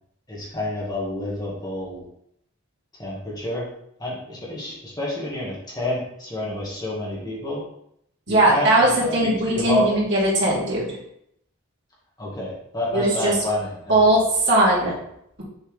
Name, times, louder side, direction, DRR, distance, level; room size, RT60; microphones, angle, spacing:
voice 1, 0.3-2.0 3.0-3.7 4.0-7.6 8.3-10.0 12.2-14.1, left 1 dB, 20° left, -5 dB, 1.7 m, -28 dB
voice 2, 8.3-10.9 12.9-13.3 13.9-14.2 14.4-14.9, right 1 dB, 55° right, -7 dB, 2.6 m, -19 dB
6.5 x 4.6 x 3.4 m, 0.73 s
head